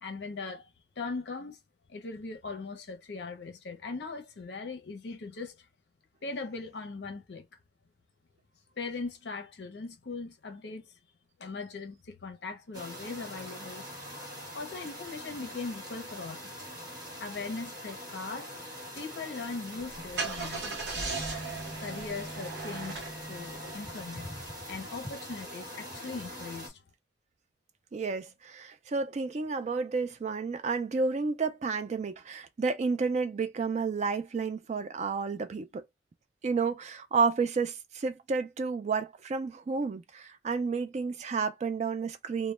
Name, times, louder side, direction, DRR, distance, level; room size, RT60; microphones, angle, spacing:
voice 1, 0.0-0.7 1.0-1.6 1.9-5.7 6.2-7.5 8.8-10.9 11.4-13.9 14.5-16.5 17.2-18.5 19.0-21.0 21.8-23.0 23.3-24.3 24.7-26.8, left 4 dB, 60° left, 0.6 m, -39 dB
sound 1, 12.7-26.7, equal, 20° right, 1.2 m, -43 dB
Car / Engine starting, 19.8-24.4, right 3 dB, 70° right, 0.8 m, -38 dB
voice 2, 27.9-35.8 36.4-42.5, right 4 dB, 40° right, 0.3 m, -31 dB
2.1 x 2.1 x 3.1 m
head